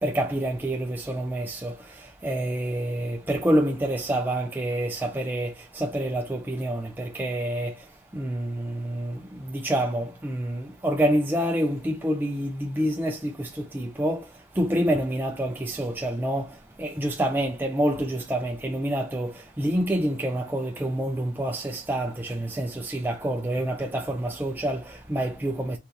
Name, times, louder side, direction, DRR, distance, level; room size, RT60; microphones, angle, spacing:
voice 1, 0.0-25.8, right 1 dB, 10° right, 0.5 m, -27 dB
4.3 x 3.5 x 3.2 m
head